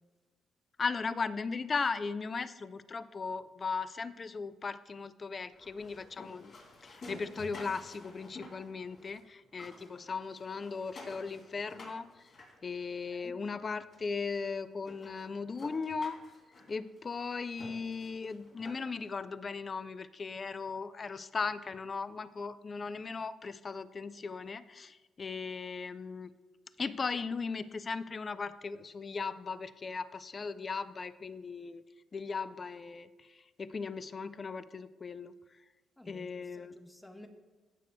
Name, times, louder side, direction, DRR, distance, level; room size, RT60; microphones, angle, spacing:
voice 1, 0.8-6.5 6.8-12.3 12.6-16.2 16.7-26.3 26.8-31.8 32.1-35.3 36.1-36.8, left 4 dB, 35° left, 14 dB, 0.4 m, -37 dB
sound 1, 5.5-9.2 9.5-13.2 13.9-14.0 14.4-14.5 14.8-19.1, left 2 dB, 60° left, 2.9 m, -52 dB
voice 2, 36.0-37.3, left 1 dB, 15° left, 5 dB, 0.9 m, -53 dB
15.5 x 6.8 x 2.3 m, 1.2 s
cardioid pair, 90°, 0 cm